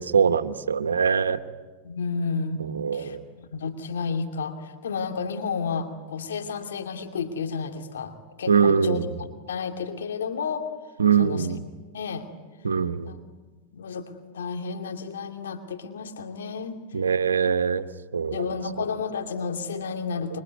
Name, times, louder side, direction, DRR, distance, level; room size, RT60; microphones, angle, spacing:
voice 1, 0.0-1.4 2.6-3.2 8.5-9.1 11.0-11.6 12.6-13.1 16.9-17.9 18.1-18.5, right 6 dB, 90° right, 11 dB, 1.2 m, -22 dB
voice 2, 1.8-2.6 2.9-9.0 9.5-10.7 11.2-11.5 11.9-12.3 13.0-13.2 13.7-16.8 18.3-20.4, left 5 dB, 80° left, 5 dB, 2.6 m, -31 dB
26.0 x 24.5 x 9.5 m, 1.3 s
hypercardioid pair, 100°, 0 cm